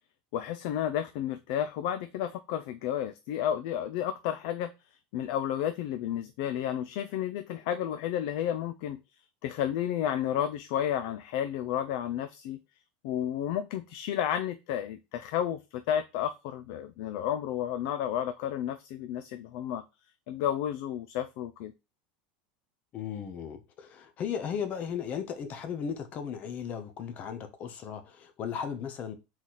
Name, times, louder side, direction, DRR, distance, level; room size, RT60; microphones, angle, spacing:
voice 1, 0.3-4.7 5.1-9.0 9.4-12.6 13.0-15.6 15.9-19.8 20.3-21.7, left 10 dB, 60° left, 0.4 m, -31 dB
voice 2, 22.9-29.2, left 7 dB, 35° left, 0.7 m, -36 dB
4.0 x 3.1 x 4.1 m
supercardioid pair, 160°, 4 cm